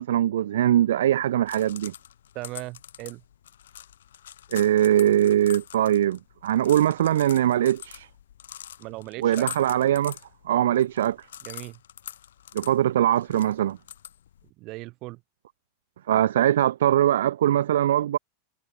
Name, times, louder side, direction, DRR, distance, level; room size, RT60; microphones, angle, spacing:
voice 1, 0.0-1.9 4.5-8.1 9.2-10.2 10.4-11.2 12.5-13.8 16.1-18.2, right 11 dB, 60° right, 1.0 m, -22 dB
sound 1, 1.2-14.5, left 10 dB, 60° left, 3.6 m, -44 dB
voice 2, 2.3-3.2 8.8-9.5 11.4-11.8 14.6-15.2, right 21 dB, 40° right, 2.7 m, -38 dB
figure-of-eight pair, 90°, 0 cm